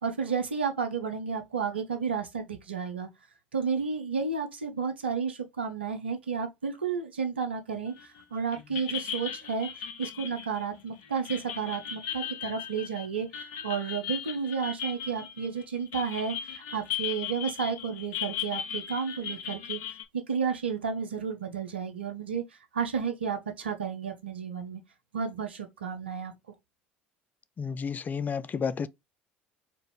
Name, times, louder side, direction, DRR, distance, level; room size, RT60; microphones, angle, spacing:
voice 1, 0.0-3.1 3.5-19.8 20.3-22.4 22.7-24.8 25.1-26.3, right 6 dB, 85° right, 0.7 m, -32 dB
sound 1, 8.0-8.2 8.5-20.0, left 9 dB, 65° left, 0.6 m, -37 dB
voice 2, 27.6-28.9, left 6 dB, 30° left, 0.4 m, -31 dB
4.4 x 2.6 x 3.3 m
figure-of-eight pair, 65°, 6 cm